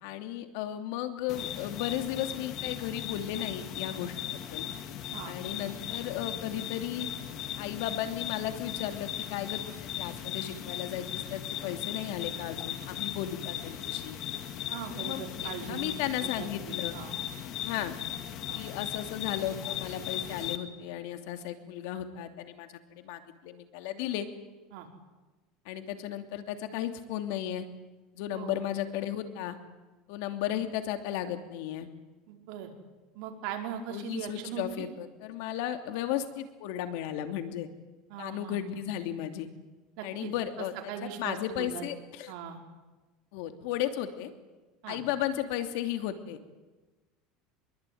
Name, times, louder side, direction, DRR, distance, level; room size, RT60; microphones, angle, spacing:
voice 1, 0.0-4.1 4.5-4.6 5.2-7.1 7.6-14.2 14.9-16.9 17.6-17.9 18.5-24.3 25.6-27.6 28.1-29.6 30.1-31.9 33.9-37.7 38.2-39.5 40.0-40.7 41.0-42.3 43.3-44.3 44.9-46.4, left 11 dB, 70° left, 8 dB, 2.9 m, -35 dB
sound 1, 1.3-20.6, left 10 dB, 45° left, 2.1 m, -38 dB
voice 2, 14.7-15.9 16.2-17.2 18.5-18.6 24.7-24.9 28.3-28.6 32.3-32.7 33.1-34.8 38.1-38.8 40.0-41.9 42.3-42.6 44.8-45.0, right 8 dB, 65° right, 3 dB, 5.1 m, -40 dB
25.0 x 22.5 x 9.5 m, 1.2 s
supercardioid pair, 140°, 0 cm